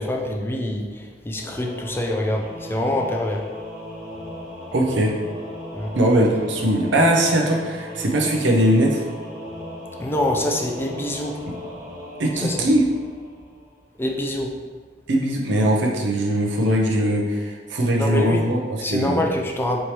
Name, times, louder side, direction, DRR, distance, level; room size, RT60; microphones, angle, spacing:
voice 1, 0.0-3.5 5.7-6.0 10.0-11.4 12.3-12.7 14.0-14.6 18.0-18.4 18.8-19.8, left 1 dB, 15° left, 1 dB, 0.3 m, -25 dB
Singing / Musical instrument, 1.3-13.8, left 1 dB, 50° right, 1.3 m, -37 dB
voice 2, 4.7-5.1 5.9-9.0 11.5-11.6 12.2-12.8 15.1-19.2, right 1 dB, 80° right, 0 dB, 0.6 m, -20 dB
4.4 x 3.2 x 2.8 m, 1.5 s
head